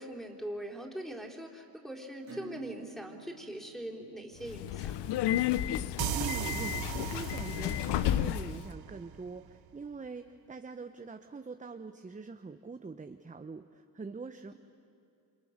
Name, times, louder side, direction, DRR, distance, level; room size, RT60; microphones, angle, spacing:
voice 1, 0.0-5.1, right 1 dB, ahead, -1 dB, 3.9 m, -42 dB
Acoustic guitar / Strum, 2.2-7.5, right 4 dB, 40° right, 2.6 m, -54 dB
Subway metro underground, 4.4-8.6, left 12 dB, 90° left, 0.8 m, -32 dB
voice 2, 6.0-14.5, right 4 dB, 20° right, 7 dB, 0.9 m, -43 dB
sound 1, 6.0-9.5, right 15 dB, 65° right, 0.5 m, -38 dB
29.0 x 25.5 x 6.6 m, 2.6 s
cardioid pair, 85°, 40 cm